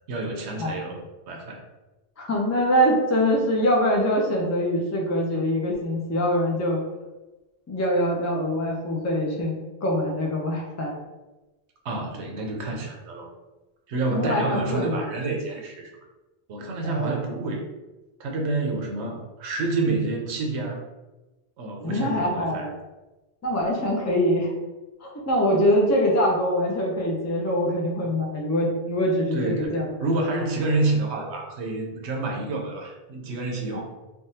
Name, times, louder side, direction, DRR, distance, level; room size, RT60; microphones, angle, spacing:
voice 1, 0.1-1.6 11.8-13.3 13.9-15.9 16.5-17.7 18.2-20.8 21.6-22.7 28.0-28.1 29.3-33.8, right 2 dB, 90° right, 1 dB, 0.9 m, -28 dB
voice 2, 2.2-6.8 7.7-11.0 14.1-15.0 16.8-17.2 21.8-22.8 23.4-24.5 25.0-30.4 33.7-33.8, equal, 30° left, -2 dB, 0.3 m, -24 dB
3.5 x 2.2 x 2.7 m, 1.1 s
omnidirectional pair, 1.1 m